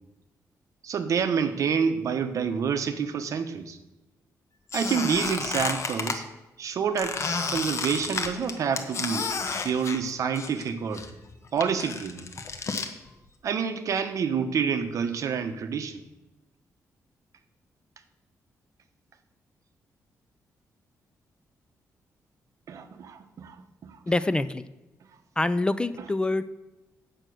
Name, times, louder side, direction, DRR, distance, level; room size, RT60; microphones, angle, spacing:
voice 1, 0.8-3.8 4.7-6.3 6.6-7.2 7.5-9.3 9.6-11.1 11.5-12.3 13.4-16.0 22.7-24.0, right 6 dB, 60° right, 8 dB, 1.0 m, -28 dB
Squeak, 4.7-6.2 7.0-10.7 10.9-12.9, left 4 dB, 50° left, 1.1 m, -31 dB
voice 2, 24.1-24.6 25.4-26.4, left 2 dB, 15° left, 14 dB, 0.4 m, -25 dB
9.0 x 7.8 x 6.3 m, 1.0 s
cardioid pair, 135°, 6 cm